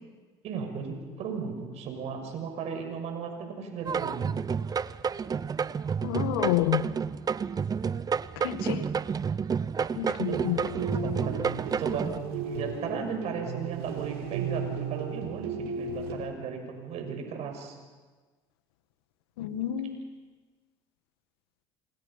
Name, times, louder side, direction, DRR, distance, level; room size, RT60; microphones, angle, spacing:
voice 1, 0.4-4.3 10.2-10.6 11.0-17.8, right 6 dB, 60° right, 5 dB, 6.3 m, -36 dB
sound 1, 3.9-12.2, right 6 dB, 30° right, 0.7 m, -30 dB
voice 2, 6.0-6.8 8.4-8.9 9.9-10.6 19.4-20.0, left 13 dB, 85° left, 10 dB, 1.8 m, -29 dB
sound 2, 10.2-16.1, right 5 dB, 85° right, 3.8 m, -35 dB
27.5 x 27.5 x 5.7 m, 1.4 s
hypercardioid pair, 75°, 12 cm